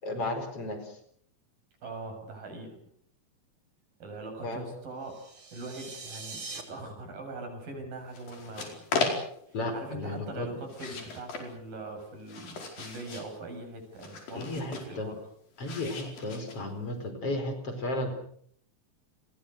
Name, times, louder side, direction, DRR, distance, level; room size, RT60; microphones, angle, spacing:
voice 1, 0.0-1.0 4.4-4.7 9.5-10.5 14.4-15.1 15.6-18.1, left 2 dB, 45° left, 7 dB, 5.4 m, -34 dB
voice 2, 1.8-2.8 4.0-5.3 5.5-8.7 9.7-15.2, right 2 dB, 85° right, 5 dB, 8.7 m, -41 dB
sound 1, 5.0-6.6, right 4 dB, 35° right, 3.9 m, -42 dB
sound 2, 8.1-9.6 10.6-11.5 12.0-13.3 14.0-14.9 15.6-16.8, left 4 dB, 90° left, 6.4 m, -36 dB
30.0 x 22.0 x 6.6 m, 0.65 s
omnidirectional pair, 3.9 m